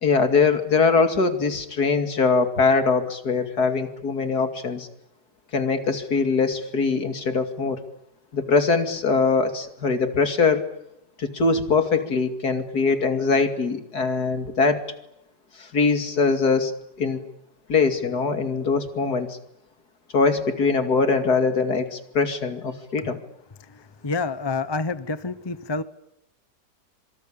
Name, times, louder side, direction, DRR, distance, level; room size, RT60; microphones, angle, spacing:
voice 1, 0.0-4.9 5.5-7.8 8.3-10.7 11.2-14.8 15.6-16.7 17.0-17.2 17.7-19.4 20.1-23.2, left 4 dB, 65° left, 3.0 m, -22 dB
voice 2, 24.0-25.8, left 3 dB, 20° left, 0.8 m, -27 dB
26.5 x 24.5 x 8.7 m
omnidirectional pair, 1.8 m